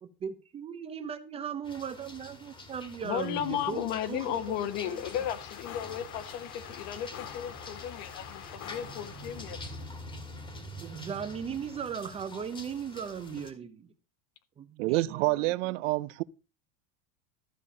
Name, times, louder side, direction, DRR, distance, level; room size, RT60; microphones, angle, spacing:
voice 1, 0.0-4.4 4.8-5.0 10.8-13.9 14.6-15.9, right 7 dB, 15° right, 0.6 m, -38 dB
sound 1, 1.6-13.5, left 1 dB, 10° left, 1.6 m, -46 dB
voice 2, 3.0-9.9, left 10 dB, 55° left, 1.3 m, -35 dB
sound 2, 4.2-9.9, left 10 dB, 80° left, 2.0 m, -46 dB
voice 3, 14.8-16.2, right 20 dB, 60° right, 0.6 m, -28 dB
13.5 x 6.7 x 5.4 m
supercardioid pair, 170°, 42 cm